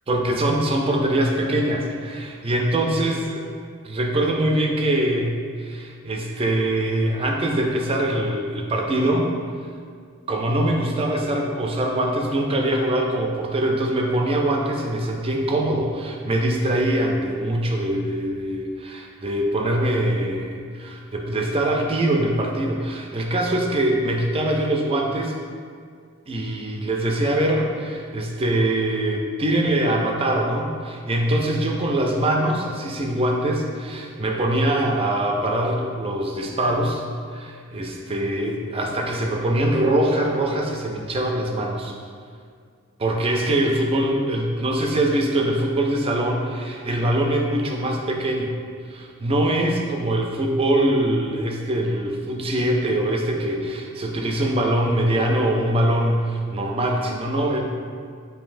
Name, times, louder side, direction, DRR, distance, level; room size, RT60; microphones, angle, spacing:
voice 1, 0.1-3.4 3.8-9.3 10.3-25.3 26.3-37.0 37.3-41.9 43.0-48.6 48.9-57.6, right 1 dB, 25° right, 1 dB, 0.4 m, -23 dB
7.2 x 2.7 x 2.5 m, 2.1 s
head